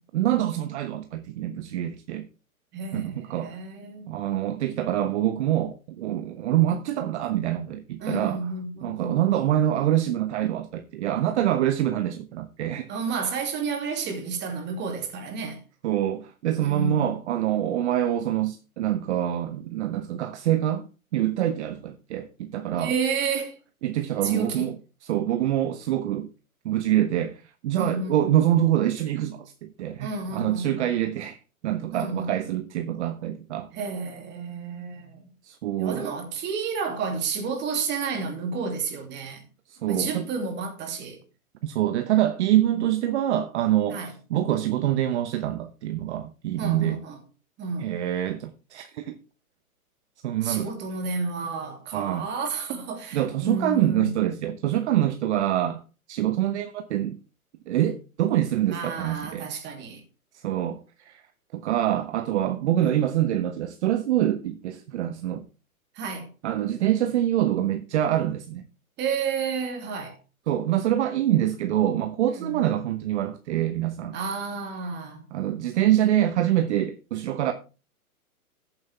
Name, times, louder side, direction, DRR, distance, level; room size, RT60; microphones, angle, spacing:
voice 1, 0.1-2.3 2.9-3.6 4.1-8.5 8.8-12.9 15.8-20.9 21.1-22.9 23.8-26.3 26.6-33.7 35.4-36.1 39.7-40.3 41.6-47.0 47.8-49.1 50.2-50.7 51.9-52.3 53.1-55.8 56.1-57.2 57.7-59.5 60.3-61.2 61.5-65.4 66.4-68.6 70.5-74.2 75.3-77.5, right 12 dB, 50° right, 1.0 m, -25 dB
voice 2, 2.7-4.1 8.0-9.3 12.9-15.6 16.6-17.2 22.8-23.5 24.2-24.7 27.7-28.3 30.0-30.9 31.9-32.3 33.7-35.2 35.8-39.4 39.9-41.2 42.7-42.8 43.9-44.1 46.6-47.2 47.6-47.9 50.4-54.1 58.7-60.0 62.7-62.9 66.0-66.3 69.0-70.1 72.4-72.7 74.1-75.2, right 4 dB, 25° right, 2.7 m, -31 dB
14.0 x 7.7 x 3.4 m
hypercardioid pair, 135°, 44 cm